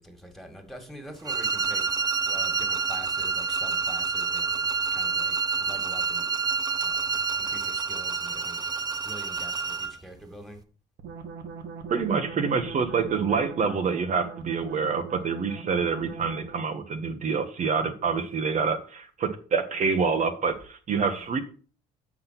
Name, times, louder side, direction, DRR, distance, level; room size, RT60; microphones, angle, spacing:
voice 1, 0.0-1.8 2.3-4.7 4.9-6.3 6.8-8.6 9.0-10.6 18.2-18.3 21.0-21.3, equal, ahead, 2.3 m, -45 dB
sound 1, 1.2-10.0, right 5 dB, 20° right, 0.9 m, -28 dB
sound 2, 11.0-16.7, right 5 dB, 80° right, 1.5 m, -41 dB
voice 2, 11.9-21.4, right 5 dB, 45° right, 1.2 m, -27 dB
7.5 x 6.0 x 5.9 m
cardioid pair, 110°, 17 cm